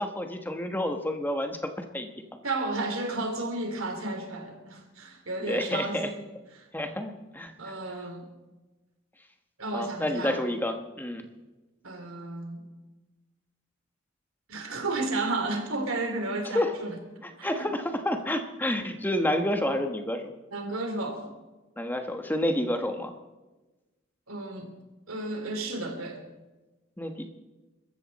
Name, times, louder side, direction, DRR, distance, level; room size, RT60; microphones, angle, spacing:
voice 1, 0.0-2.1 5.4-6.1 6.7-7.7 9.7-11.2 16.5-16.7 17.2-20.2 21.8-23.1 27.0-27.3, left 1 dB, 10° left, 5 dB, 1.2 m, -29 dB
voice 2, 2.4-6.2 6.6-6.7 7.6-8.3 9.6-10.4 11.8-12.6 14.5-17.0 17.4-17.7 20.5-21.3 24.3-24.7 25.1-26.2, right 2 dB, 75° right, 5 dB, 3.1 m, -32 dB
24.5 x 14.0 x 4.2 m, 1.1 s
head